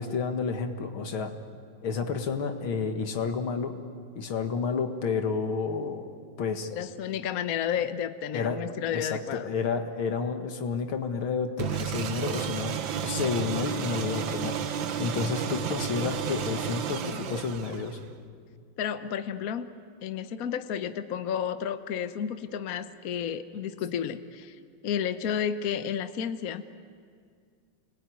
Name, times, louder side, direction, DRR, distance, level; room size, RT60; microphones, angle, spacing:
voice 1, 0.0-1.3 1.8-3.8 4.2-6.1 6.4-6.7 8.3-12.7 13.0-18.0, left 5 dB, 90° left, 6 dB, 2.5 m, -30 dB
voice 2, 6.7-9.5 18.8-19.7 20.0-24.6 24.8-26.6, left 8 dB, 55° left, 10 dB, 1.2 m, -31 dB
sound 1, 11.6-18.1, right 8 dB, 70° right, 1.7 m, -32 dB
30.0 x 21.0 x 9.4 m, 2.1 s
omnidirectional pair, 2.2 m